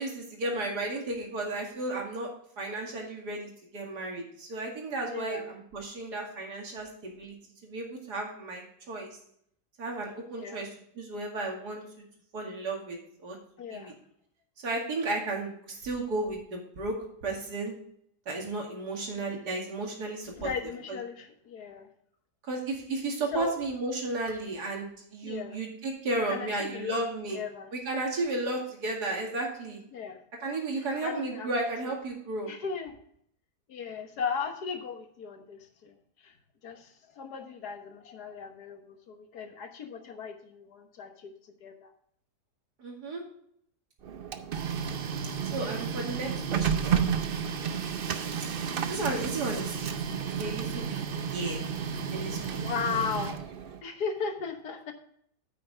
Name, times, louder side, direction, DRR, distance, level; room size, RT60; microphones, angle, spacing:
voice 1, 0.0-2.3 2.6-7.3 7.6-9.1 9.8-10.7 11.0-11.8 12.3-13.4 13.7-13.9 14.6-17.7 18.3-20.5 20.9-21.0 22.4-27.4 27.7-29.8 30.4-32.5 42.8-43.2 45.5-47.0 48.9-49.9 50.2-51.0 51.3-51.6 52.1-53.0, right 2 dB, 75° right, 0 dB, 2.7 m, -34 dB
voice 2, 5.1-5.5 10.3-10.6 13.6-13.9 20.4-21.9 23.3-23.5 25.2-25.6 26.3-27.0 27.3-27.7 29.9-30.2 31.0-31.9 32.4-33.0 33.7-36.3 36.6-41.9 44.3-44.4 52.6-53.4 53.8-54.9, left 6 dB, 75° left, 6 dB, 1.7 m, -37 dB
Printer, 44.0-53.8, right 7 dB, 55° right, 0.6 m, -31 dB
9.4 x 8.6 x 3.3 m, 0.66 s
omnidirectional pair, 1.7 m